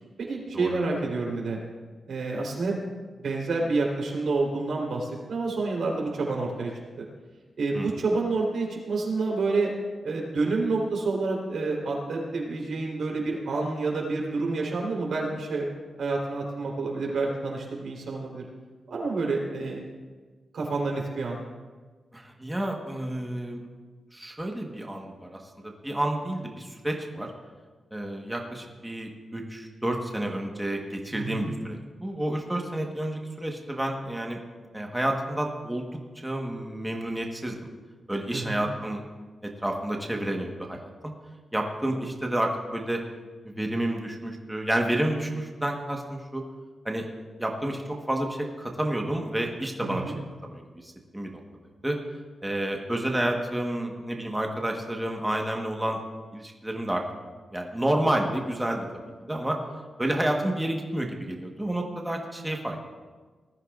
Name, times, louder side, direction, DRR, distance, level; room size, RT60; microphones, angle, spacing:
voice 1, 0.2-1.6 2.1-2.8 3.2-6.7 7.0-7.1 7.6-9.7 10.0-15.7 16.0-18.4 18.9-19.8 20.5-21.4 31.1-31.5 38.3-38.6 49.8-50.2, right 3 dB, 70° right, -1 dB, 3.7 m, -28 dB
voice 2, 22.1-23.7 24.1-27.3 27.9-34.4 34.7-37.5 38.1-39.0 39.4-41.1 41.5-43.0 43.4-46.4 46.8-47.0 47.4-50.0 50.4-51.4 51.8-52.0 52.4-56.0 56.3-57.0 57.5-59.6 60.0-62.8, right 1 dB, 5° right, 1 dB, 1.3 m, -30 dB
19.5 x 13.5 x 2.5 m, 1.4 s
wide cardioid pair, 160°, 0 cm